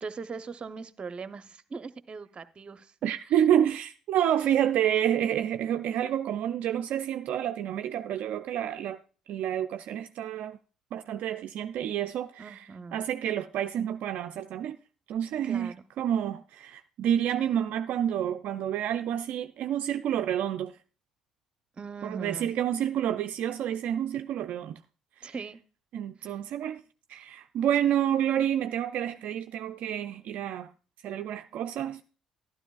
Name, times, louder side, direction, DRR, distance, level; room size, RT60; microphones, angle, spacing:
voice 1, 0.0-2.9 3.2-3.3 12.4-13.0 15.4-15.8 21.8-22.5 25.2-25.6 26.2-26.3, right 4 dB, 35° right, 0.7 m, -40 dB
voice 2, 3.0-9.0 9.3-10.6 10.9-14.8 15.1-20.8 22.0-24.8 25.2-25.3 25.9-26.8 27.1-30.7 31.0-32.0, right 10 dB, 60° right, 0.3 m, -29 dB
12.0 x 12.0 x 2.3 m
hypercardioid pair, 55°, 3 cm